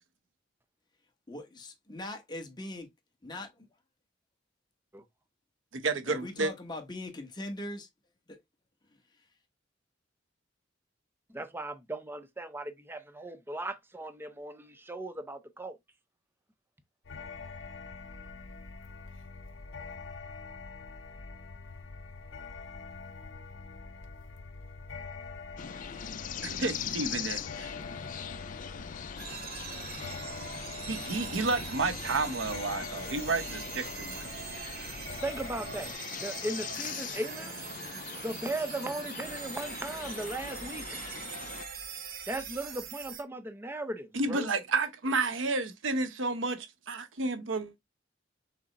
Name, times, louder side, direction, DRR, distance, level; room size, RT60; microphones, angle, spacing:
voice 1, 1.3-2.9 3.2-3.7 6.1-7.9 8.3-8.4, left 1 dB, 25° left, 1.2 m, -40 dB
voice 2, 5.7-6.5 26.4-27.7 30.9-34.2 44.1-47.7, right 3 dB, 85° right, 0.8 m, -31 dB
voice 3, 11.3-15.8 35.2-35.9 36.2-37.5 38.2-41.0 42.3-44.5, right 1 dB, 10° right, 0.6 m, -37 dB
sound 1, 17.0-35.9, left 4 dB, 85° left, 0.7 m, -45 dB
sound 2, 25.6-41.6, left 8 dB, 45° left, 0.4 m, -41 dB
sound 3, 29.2-43.2, right 7 dB, 55° right, 0.9 m, -43 dB
6.0 x 2.1 x 4.0 m
head